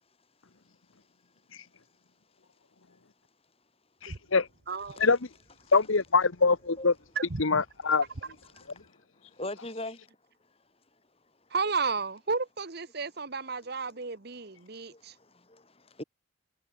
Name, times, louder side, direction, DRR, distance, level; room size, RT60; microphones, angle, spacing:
voice 1, 4.0-4.5 5.0-5.2 5.7-6.9 7.4-8.0, left 4 dB, 80° left, 1.2 m, -24 dB
voice 2, 4.7-5.0 7.2-7.4 11.5-15.1, right 4 dB, 50° right, 1.1 m, -32 dB
voice 3, 9.3-10.0 14.9-16.0, left 1 dB, 30° left, 4.4 m, -40 dB
head